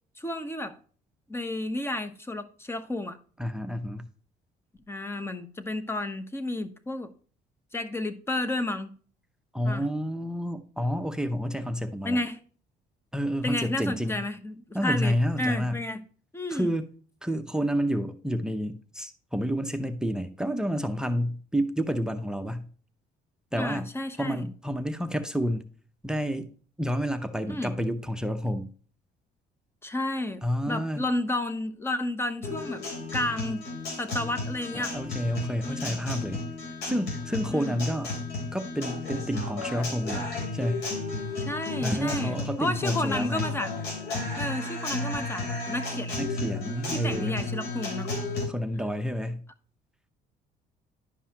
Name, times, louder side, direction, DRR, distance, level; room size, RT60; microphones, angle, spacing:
voice 1, 0.2-0.8 1.3-3.2 4.9-7.1 7.7-9.0 9.6-9.9 12.0-12.4 13.4-16.0 16.3-16.7 23.6-24.4 27.5-27.8 29.8-32.8 33.1-33.7 33.9-34.9 35.7-36.0 37.5-37.8 41.4-43.7 44.4-46.3 46.9-48.1, left 1 dB, 15° left, 1.0 m, -31 dB
voice 2, 3.4-4.1 9.5-12.2 13.1-14.2 14.7-15.8 16.5-16.9 17.2-22.7 23.5-23.9 24.2-25.7 26.0-26.5 26.8-28.7 30.4-31.0 34.7-36.4 36.8-38.1 38.5-40.3 40.5-40.9 41.8-43.5 46.2-47.4 48.5-49.4, equal, 5° right, 0.7 m, -29 dB
Guitar, 32.4-48.4, left 3 dB, 90° left, 3.7 m, -33 dB
11.0 x 5.4 x 2.9 m
cardioid pair, 110°, 17 cm